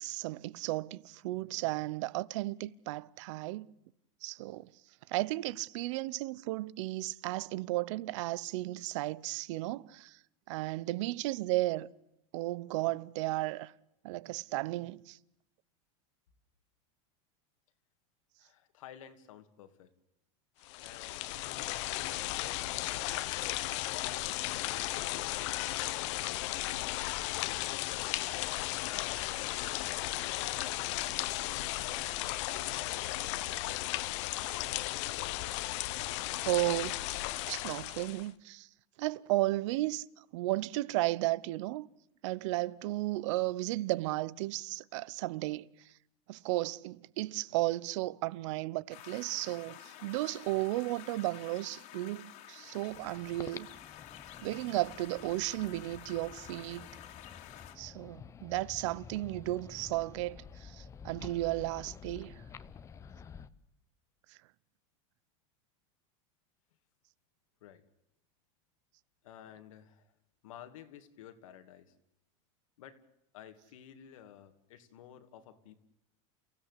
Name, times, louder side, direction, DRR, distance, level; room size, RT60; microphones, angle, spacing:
voice 1, 0.0-3.7 4.2-4.7 5.1-10.2 10.5-11.9 12.3-13.7 14.0-15.2 36.5-37.0 37.5-38.7 39.0-41.9 42.2-45.7 46.3-53.7 54.4-56.9 57.8-62.3, right 18 dB, 65° right, 0.8 m, -34 dB
voice 2, 18.4-19.9 20.8-23.6 24.0-26.3 26.7-28.1 28.9-30.9 31.7-33.8 67.6-67.8 69.2-70.1 70.4-71.9 72.8-73.0 73.3-75.7, left 10 dB, 90° left, 2.7 m, -53 dB
sound 1, 20.6-38.3, left 17 dB, 65° left, 1.2 m, -35 dB
sound 2, 48.9-57.7, left 12 dB, 45° left, 2.6 m, -51 dB
sound 3, 52.9-63.5, left 6 dB, 20° left, 0.8 m, -50 dB
29.5 x 16.0 x 8.3 m
supercardioid pair, 155°, 17 cm